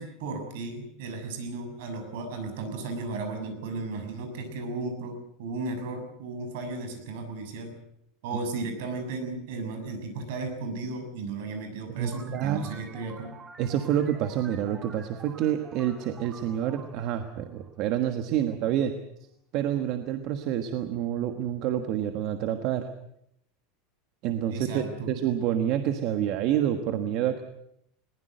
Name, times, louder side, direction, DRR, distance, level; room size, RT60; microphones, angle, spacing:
voice 1, 0.0-7.8 8.2-13.3 24.5-25.1, right 3 dB, 60° right, 6 dB, 6.9 m, -35 dB
sound 1, 12.0-18.3, right 4 dB, 15° right, 1.8 m, -49 dB
voice 2, 12.0-12.7 13.6-18.9 19.5-22.9 24.2-27.4, right 10 dB, 40° right, 8 dB, 1.4 m, -28 dB
21.5 x 20.0 x 7.9 m, 0.75 s
supercardioid pair, 180°, 0 cm